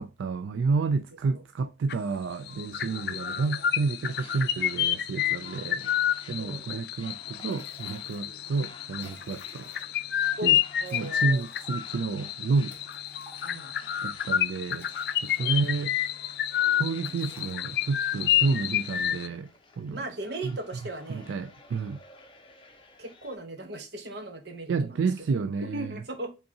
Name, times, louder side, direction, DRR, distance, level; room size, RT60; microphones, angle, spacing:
voice 1, 0.0-5.9 6.3-9.7 10.4-10.6 10.9-12.8 14.0-15.9 16.7-20.0 20.4-20.6 21.1-22.0 24.7-26.0, right 4 dB, 80° right, 0.3 m, -30 dB
sound 1, 1.9-2.2 2.5-19.3, left 11 dB, 55° left, 0.3 m, -29 dB
sound 2, 4.0-23.4, left 3 dB, 25° left, 0.7 m, -53 dB
Liquid, 7.4-8.3 8.6-8.7 8.9-10.1 10.8-13.8 14.5-16.0 16.3-16.6 17.0-18.0, left 2 dB, 10° left, 1.2 m, -55 dB
voice 2, 10.8-11.4 13.4-13.7 15.4-15.6 16.8-17.1 18.3-18.5 19.9-21.3 23.0-25.3 25.6-26.3, right 1 dB, 60° right, 1.0 m, -38 dB
5.2 x 3.7 x 2.7 m
head